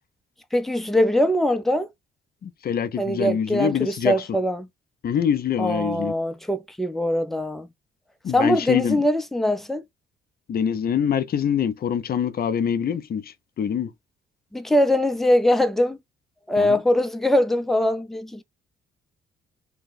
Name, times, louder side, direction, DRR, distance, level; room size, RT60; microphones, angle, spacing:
voice 1, 0.5-1.9 3.0-4.7 5.6-7.7 8.3-9.8 14.5-16.0 16.5-18.4, left 1 dB, ahead, 0.5 m, -22 dB
voice 2, 2.4-4.4 5.0-6.1 8.2-9.0 10.5-13.9 16.6-16.8, left 8 dB, 50° left, 0.6 m, -25 dB
2.8 x 2.2 x 4.0 m
cardioid pair, 90°, 20 cm